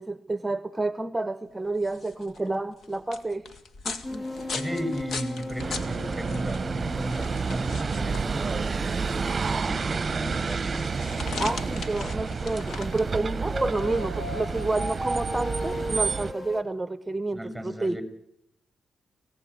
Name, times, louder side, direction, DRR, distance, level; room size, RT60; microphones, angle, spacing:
voice 1, 0.0-3.5 3.8-4.4 11.4-18.0, right 2 dB, 20° right, 1.1 m, -30 dB
sound 1, 1.7-16.2, left 4 dB, 70° left, 2.5 m, -40 dB
sound 2, 4.0-16.6, left 1 dB, 35° left, 3.5 m, -38 dB
voice 2, 4.5-8.7 9.5-10.8 17.3-18.0, equal, 5° left, 6.4 m, -35 dB
sound 3, 5.6-16.3, right 5 dB, 45° right, 0.9 m, -30 dB
25.0 x 17.5 x 9.7 m
cardioid pair, 60°, 0 cm